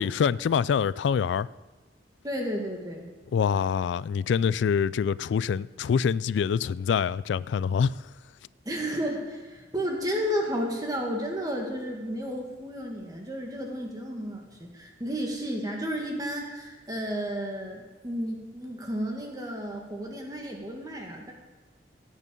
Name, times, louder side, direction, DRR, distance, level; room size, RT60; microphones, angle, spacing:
voice 1, 0.0-1.5 3.3-8.0, left 7 dB, 85° left, 0.3 m, -25 dB
voice 2, 2.2-3.1 8.6-21.3, equal, 20° right, 2.1 m, -32 dB
16.5 x 8.5 x 5.3 m
head